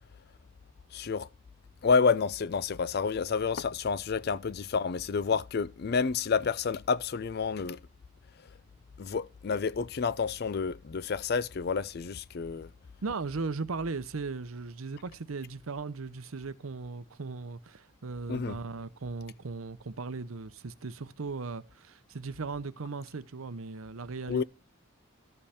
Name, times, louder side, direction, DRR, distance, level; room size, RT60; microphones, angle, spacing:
voice 1, 0.9-1.3 1.8-7.8 9.0-12.7 18.3-18.6 24.3-24.4, left 5 dB, 50° left, 0.4 m, -29 dB
voice 2, 13.0-24.4, right 4 dB, 85° right, 0.7 m, -37 dB
13.0 x 5.3 x 4.3 m
head